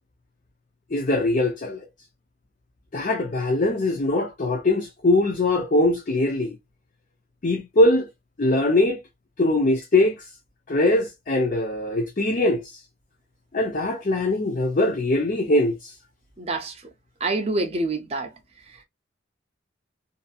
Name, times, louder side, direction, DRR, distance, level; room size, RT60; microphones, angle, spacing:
voice 1, 0.9-1.9 2.9-6.6 7.4-8.1 8.4-9.0 9.4-10.3 10.7-12.8 13.5-15.9, left 2 dB, 40° left, 0.5 m, -22 dB
voice 2, 16.4-16.8 17.2-18.3, right 2 dB, 30° right, 0.6 m, -26 dB
2.7 x 2.6 x 2.3 m
head